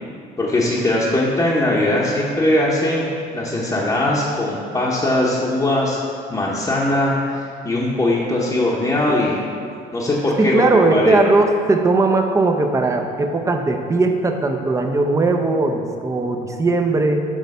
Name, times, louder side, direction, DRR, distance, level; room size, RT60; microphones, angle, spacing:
voice 1, 0.4-3.1 3.3-6.0 6.3-9.4 9.9-11.2, left 1 dB, 20° left, -7 dB, 0.9 m, -20 dB
voice 2, 10.4-17.3, right 2 dB, 20° right, 4 dB, 0.6 m, -18 dB
6.4 x 3.9 x 5.4 m, 2.3 s
cardioid pair, 110°, 17 cm